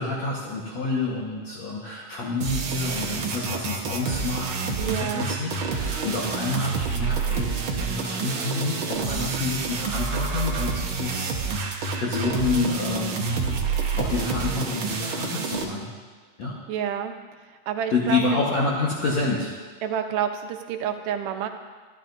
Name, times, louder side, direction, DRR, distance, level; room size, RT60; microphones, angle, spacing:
voice 1, 0.0-13.6 14.0-15.9 16.4-16.6 17.9-19.5, left 3 dB, 60° left, -4 dB, 2.4 m, -28 dB
sound 1, 2.4-15.6, right 5 dB, 60° right, 1.4 m, -28 dB
voice 2, 4.8-5.3 9.0-9.3 16.7-17.1 17.4-18.4 19.8-21.5, right 9 dB, 75° right, 6 dB, 2.4 m, -29 dB
24.5 x 12.0 x 2.7 m, 1.5 s
omnidirectional pair, 3.8 m